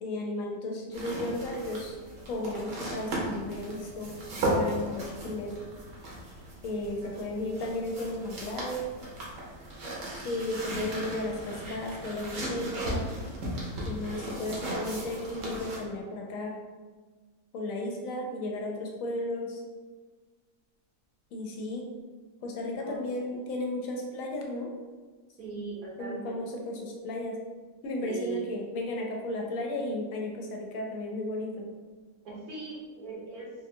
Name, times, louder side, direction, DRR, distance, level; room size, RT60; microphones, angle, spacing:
voice 1, 0.0-2.0 2.3-5.6 6.6-8.8 10.2-13.1 13.8-16.5 17.5-19.6 21.3-21.9 22.4-24.7 26.0-27.4 27.8-31.7, left 1 dB, 70° left, 0 dB, 0.9 m, -34 dB
sound 1, 0.9-15.8, right 1 dB, 60° right, 1.1 m, -36 dB
voice 2, 6.7-7.3 21.6-21.7 22.7-23.0 25.4-26.4 28.0-28.4 32.2-33.5, right 5 dB, 75° right, -5 dB, 1.4 m, -40 dB
3.3 x 2.5 x 2.7 m, 1.4 s
omnidirectional pair, 1.6 m